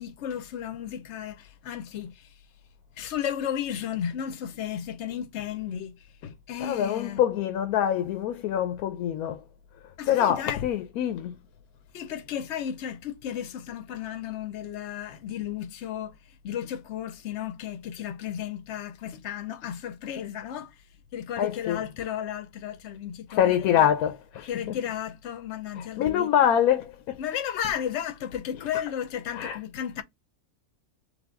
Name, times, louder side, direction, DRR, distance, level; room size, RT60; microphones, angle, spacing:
voice 1, 0.0-2.3 3.0-5.9 6.2-7.2 10.0-10.6 11.9-16.2 16.4-20.7 21.1-23.9 24.5-26.3 27.2-30.0, left 9 dB, 60° left, 0.8 m, -34 dB
voice 2, 6.6-9.4 10.1-11.4 21.4-21.8 23.4-24.7 26.0-27.2 29.3-29.6, left 10 dB, 85° left, 1.1 m, -25 dB
3.5 x 3.3 x 3.6 m
omnidirectional pair, 1.5 m